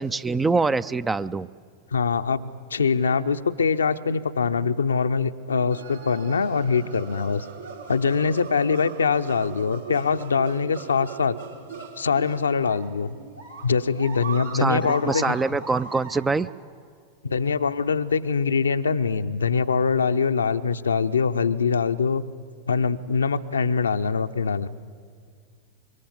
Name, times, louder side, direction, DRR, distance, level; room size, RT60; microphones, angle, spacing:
voice 1, 0.0-1.5 14.6-16.5, right 3 dB, 10° right, 16 dB, 0.5 m, -24 dB
voice 2, 1.9-7.5 7.9-11.4 12.0-13.1 13.6-15.4 17.2-22.2 22.7-24.7, left 5 dB, 70° left, 10 dB, 0.8 m, -23 dB
sound 1, 5.7-16.5, right 5 dB, 75° right, 3.8 m, -39 dB
26.0 x 23.0 x 7.3 m, 2.2 s
figure-of-eight pair, 90°, 0 cm